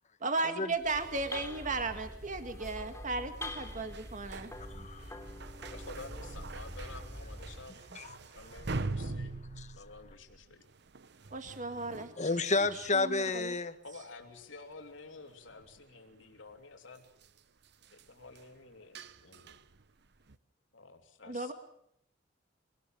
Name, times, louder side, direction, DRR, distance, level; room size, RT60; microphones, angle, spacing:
voice 1, 0.2-4.5 11.3-12.1 12.9-13.5 21.3-21.5, right 3 dB, 40° right, 8 dB, 1.9 m, -35 dB
sound 1, 0.7-7.7, left 1 dB, 15° left, 3.4 m, -45 dB
sound 2, 3.3-13.6 13.9-14.0 14.3-20.4, right 3 dB, 60° right, 1.0 m, -45 dB
voice 2, 4.7-5.1 7.9-8.1 9.6-9.7 12.2-13.7, left 3 dB, 40° left, 11 dB, 1.4 m, -30 dB
voice 3, 5.7-7.8 8.3-9.3 9.7-10.7 13.8-17.0 17.9-19.0 19.2-19.6 20.7-21.5, left 3 dB, 85° left, 4 dB, 3.3 m, -50 dB
24.5 x 19.0 x 7.5 m, 0.72 s
head